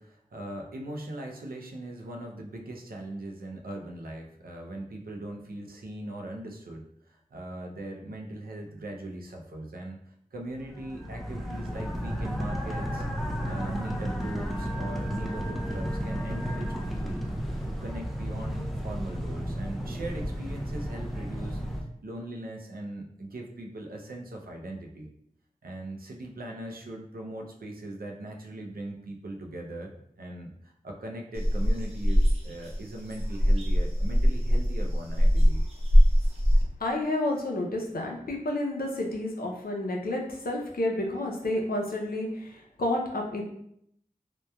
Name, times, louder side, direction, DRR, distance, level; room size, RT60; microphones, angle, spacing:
voice 1, 0.0-13.0 13.4-17.2 17.7-21.6 22.0-25.1 25.6-35.6, right 1 dB, 85° right, 1 dB, 0.4 m, -40 dB
sound 1, 10.6-21.8, equal, ahead, 0.4 m, -33 dB
sound 2, 31.3-36.6, equal, 40° right, 0.7 m, -22 dB
voice 2, 36.8-43.4, left 1 dB, 90° left, 0 dB, 0.5 m, -30 dB
2.9 x 2.1 x 2.2 m, 0.72 s
wide cardioid pair, 55°, 15 cm